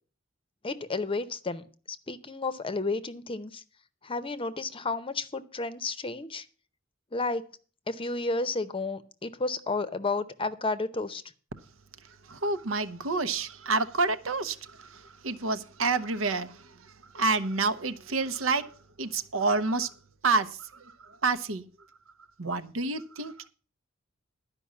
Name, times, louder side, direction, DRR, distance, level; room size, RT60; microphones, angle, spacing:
voice 1, 0.6-3.6 4.0-6.5 7.1-7.4 7.9-11.2, left 3 dB, 25° left, 0.7 m, -32 dB
voice 2, 12.0-18.7 19.0-19.9 20.2-21.6 22.4-23.5, right 3 dB, 80° right, 0.9 m, -29 dB
11.5 x 5.3 x 8.4 m
head